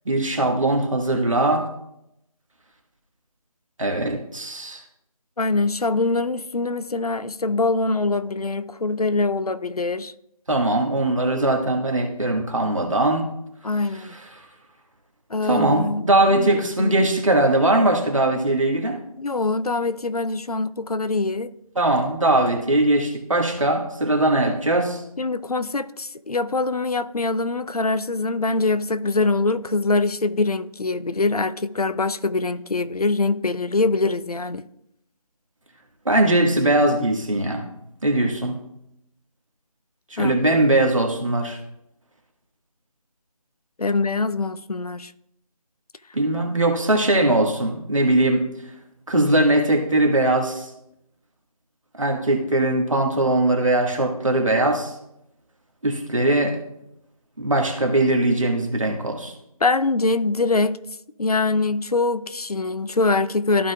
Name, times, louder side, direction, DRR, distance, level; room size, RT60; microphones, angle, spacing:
voice 1, 0.0-1.6 3.8-4.8 10.5-13.3 15.4-19.0 21.7-25.0 36.0-37.7 38.0-38.6 40.1-41.6 46.1-48.4 49.1-50.7 52.0-54.9 55.8-56.6 57.4-59.3, right 1 dB, 60° right, 1.8 m, -20 dB
voice 2, 5.4-10.1 13.6-14.1 15.3-16.0 16.3-16.5 16.8-17.0 19.2-21.5 25.2-34.6 40.2-40.3 43.8-45.1 59.6-60.8 61.2-63.7, left 3 dB, 75° left, 0.6 m, -23 dB
14.5 x 5.1 x 2.4 m
figure-of-eight pair, 165°, 19 cm